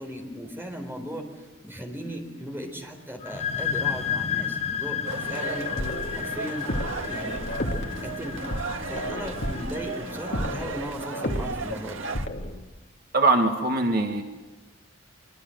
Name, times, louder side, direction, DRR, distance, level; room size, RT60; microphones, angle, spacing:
voice 1, 0.0-5.0 5.3-5.7 6.1-6.7 7.1-8.5 8.9-12.1, equal, 10° right, 3 dB, 4.1 m, -37 dB
sound 1, 3.2-10.6, left 8 dB, 30° left, 1.2 m, -32 dB
sound 2, 5.0-12.3, right 4 dB, 80° right, 1.7 m, -35 dB
sound 3, 5.6-12.6, left 1 dB, 60° left, 2.3 m, -33 dB
voice 2, 13.1-14.2, right 2 dB, 50° right, 4 dB, 1.7 m, -22 dB
25.5 x 24.0 x 7.9 m, 1.1 s
head